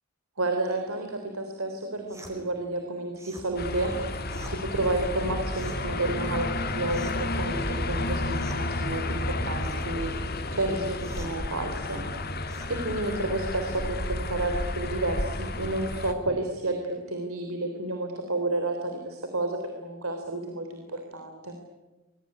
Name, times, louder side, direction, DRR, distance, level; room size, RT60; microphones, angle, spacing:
voice 1, 0.4-4.1 4.5-10.1 10.5-12.0 12.7-21.6, right 2 dB, 85° right, 5 dB, 3.5 m, -31 dB
sound 1, 2.1-2.4 3.1-3.5 4.3-4.6 5.5-5.8 6.9-7.3 8.3-8.6 9.6-9.9 11.0-11.4 12.5-12.7, right 1 dB, 15° right, 5.1 m, -47 dB
sound 2, 3.6-16.1, left 2 dB, 45° left, 2.1 m, -31 dB
26.5 x 22.0 x 9.9 m, 1.2 s
head